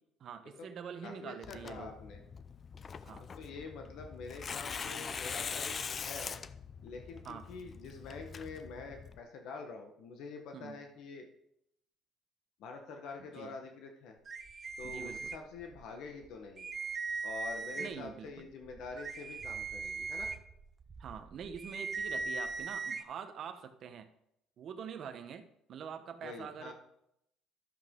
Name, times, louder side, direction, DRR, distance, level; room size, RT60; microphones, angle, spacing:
voice 1, 0.2-2.0 3.0-3.3 7.2-7.5 10.5-10.8 13.2-13.6 14.8-15.3 17.8-18.4 21.0-24.1 24.6-26.7, right 7 dB, 55° right, 9 dB, 1.0 m, -45 dB
voice 2, 1.0-2.2 3.4-6.4 6.8-11.3 12.6-14.2 14.8-16.7 17.2-20.3 26.2-26.7, left 4 dB, 75° left, 3 dB, 1.2 m, -46 dB
Tearing, 1.4-9.2, left 6 dB, 35° left, 0.5 m, -43 dB
sound 1, 14.3-15.8 16.2-16.3 16.6-18.1 18.6-23.0, right 4 dB, 30° right, 0.7 m, -39 dB
11.5 x 7.6 x 3.8 m, 0.77 s
cardioid pair, 105°, 0 cm